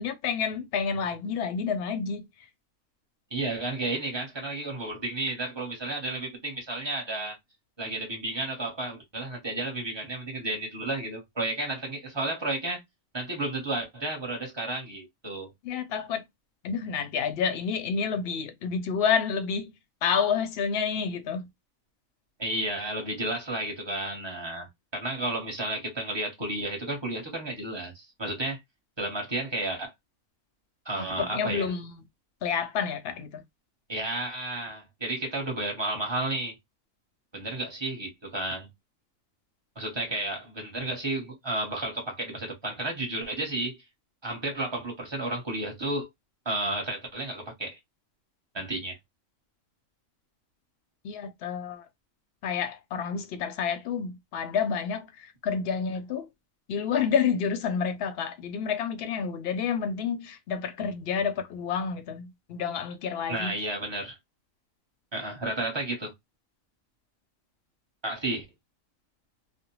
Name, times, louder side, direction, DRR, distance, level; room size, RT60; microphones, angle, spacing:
voice 1, 0.0-2.3 15.6-16.2 16.6-19.7 20.0-21.5 31.0-32.0 32.4-33.4 51.0-51.9 52.4-56.3 56.7-63.5, left 6 dB, 60° left, 0.7 m, -29 dB
voice 2, 3.3-7.4 7.8-12.8 13.1-15.5 22.4-28.6 29.0-29.9 30.8-31.7 33.9-36.6 37.3-38.7 39.8-43.8 44.2-46.1 46.4-47.8 48.5-49.0 63.3-64.2 65.1-66.1 68.0-68.4, right 2 dB, 20° right, 0.9 m, -32 dB
2.5 x 2.1 x 2.9 m
omnidirectional pair, 1.4 m